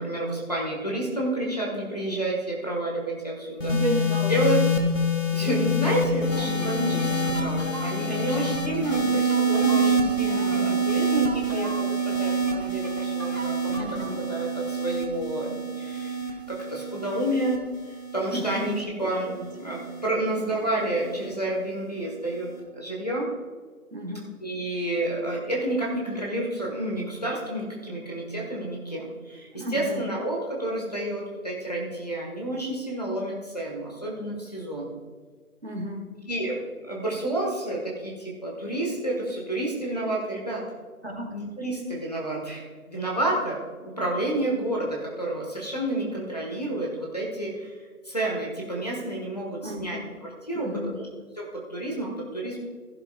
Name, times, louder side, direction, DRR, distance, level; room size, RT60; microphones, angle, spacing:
voice 1, 0.0-3.7 4.3-4.6 5.3-13.9 14.2-17.6 18.1-23.3 24.4-34.9 36.3-40.7 41.3-47.7 48.0-51.1 51.4-52.6, right 1 dB, 25° left, -4 dB, 1.4 m, -30 dB
sound 1, 3.6-20.1 21.0-21.3, right 1 dB, 55° left, 2.0 m, -26 dB
voice 2, 3.6-4.3 6.3-8.5 10.3-10.9 13.7-14.3 18.3-19.5 20.2-20.5 23.9-24.4 29.5-30.1 35.6-36.1 41.0-41.3 49.6-50.1 50.5-51.0, equal, 45° right, 3 dB, 1.4 m, -34 dB
sound 2, 6.4-14.1, right 1 dB, 65° right, 2.9 m, -40 dB
14.0 x 11.5 x 2.3 m, 1.5 s
figure-of-eight pair, 175°, 44 cm